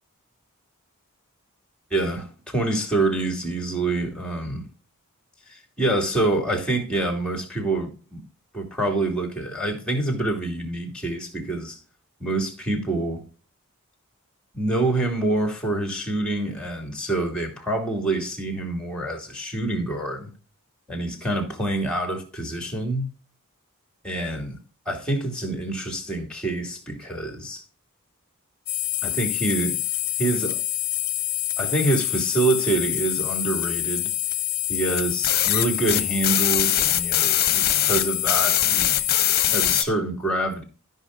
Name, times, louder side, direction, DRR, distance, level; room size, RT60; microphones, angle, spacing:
voice 1, 1.9-4.6 5.5-8.2 8.5-11.8 12.2-13.2 14.5-20.3 20.9-23.1 24.0-24.6 24.9-27.6 29.0-29.8 30.2-30.6 31.6-34.1 34.7-39.0 39.5-40.6, right 2 dB, 5° left, 2.8 m, -26 dB
sound 1, 28.7-39.8, left 13 dB, 45° left, 0.9 m, -24 dB
13.0 x 5.6 x 3.9 m
head